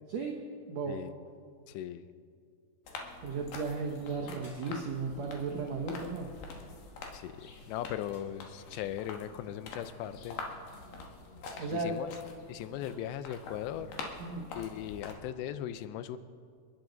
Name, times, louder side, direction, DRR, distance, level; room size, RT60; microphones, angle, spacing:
voice 1, 0.7-1.0 3.2-6.3 11.6-12.0 14.2-14.5, right 4 dB, 85° right, 1 dB, 1.5 m, -35 dB
voice 2, 1.7-2.1 7.1-10.4 11.7-12.1 12.5-13.9 14.5-16.2, left 11 dB, 90° left, 12 dB, 2.9 m, -38 dB
sound 1, 2.8-15.1, left 3 dB, 65° left, 3.1 m, -46 dB
sound 2, 4.4-5.2 5.6-5.8 6.1-7.1 8.1-8.9, left 1 dB, 15° left, 2.1 m, -61 dB
29.0 x 10.5 x 4.0 m, 2.2 s
omnidirectional pair, 4.8 m